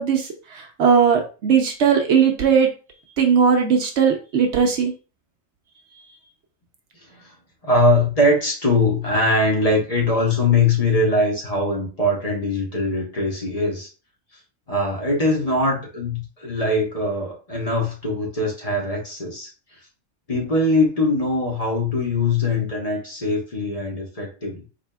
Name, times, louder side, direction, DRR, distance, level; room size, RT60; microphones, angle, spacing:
voice 1, 0.0-2.7 3.2-4.9, right 6 dB, 65° right, 4 dB, 0.9 m, -18 dB
voice 2, 7.6-13.9 14.7-19.5 20.3-24.6, left 2 dB, 30° left, -2 dB, 1.0 m, -21 dB
4.2 x 3.3 x 2.2 m, 0.34 s
omnidirectional pair, 1.3 m